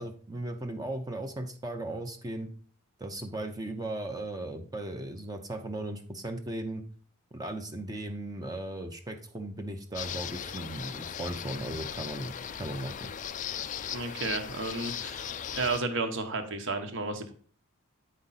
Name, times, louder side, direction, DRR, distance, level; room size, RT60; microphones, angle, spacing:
voice 1, 0.0-2.5 3.0-6.8 7.3-12.3 12.6-13.1, right 1 dB, 15° right, 5 dB, 0.6 m, -37 dB
sound 1, 9.9-15.8, left 8 dB, 35° left, 0.4 m, -38 dB
voice 2, 13.9-15.3 15.5-17.3, right 3 dB, 60° right, 7 dB, 1.1 m, -32 dB
8.6 x 5.1 x 4.1 m, 0.43 s
head